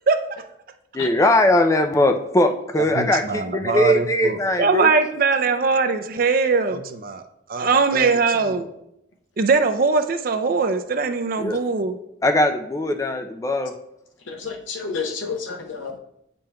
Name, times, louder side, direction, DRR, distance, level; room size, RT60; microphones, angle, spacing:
voice 1, 0.9-4.9 11.4-11.6 12.2-13.7, left 1 dB, 15° left, 5 dB, 0.4 m, -20 dB
voice 2, 2.9-7.2 7.5-8.7 9.4-12.0, right 4 dB, 50° right, 8 dB, 0.4 m, -21 dB
voice 3, 14.2-16.0, left 5 dB, 85° left, 3 dB, 0.7 m, -30 dB
8.6 x 5.3 x 2.2 m, 0.80 s
head